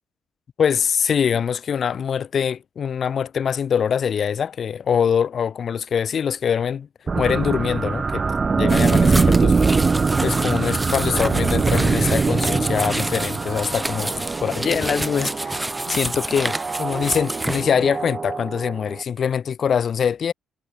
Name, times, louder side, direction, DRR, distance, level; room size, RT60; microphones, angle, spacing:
voice 1, 0.6-6.9 7.1-9.9 10.2-20.3, left 7 dB, 55° left, 0.9 m, -23 dB
sound 1, 7.1-19.0, right 4 dB, 30° right, 0.3 m, -22 dB
sound 2, 8.7-17.6, right 1 dB, 10° right, 1.3 m, -29 dB
cardioid pair, 90°, 0 cm